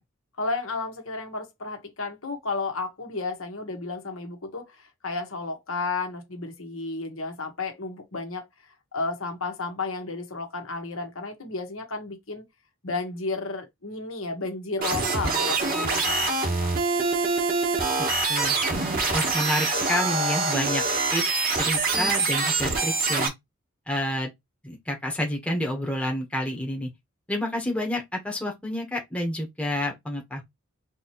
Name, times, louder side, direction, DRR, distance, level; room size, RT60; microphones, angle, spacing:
voice 1, 0.4-12.4 12.8-16.7, left 3 dB, 75° left, 1.4 m, -33 dB
sound 1, 14.8-23.3, right 3 dB, 40° right, 1.2 m, -25 dB
voice 2, 18.3-18.8 19.1-20.8 21.1-23.3 23.9-24.3 24.6-26.9 27.3-30.4, left 1 dB, 5° left, 1.1 m, -29 dB
4.3 x 3.0 x 3.0 m
head